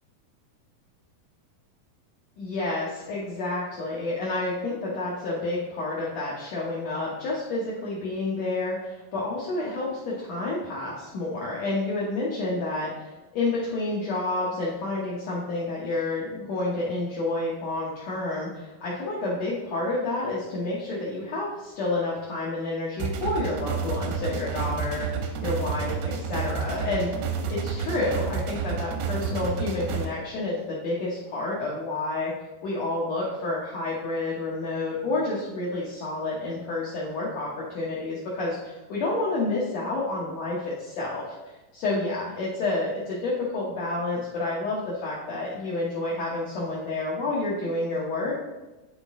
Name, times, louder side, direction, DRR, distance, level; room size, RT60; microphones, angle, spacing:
voice 1, 2.4-32.3 32.6-41.2 41.7-48.3, left 2 dB, 70° left, -5 dB, 1.6 m, -29 dB
sound 1, 23.0-30.1, right 5 dB, 90° right, 2.5 m, -30 dB
10.0 x 3.7 x 3.6 m, 1.1 s
omnidirectional pair, 4.4 m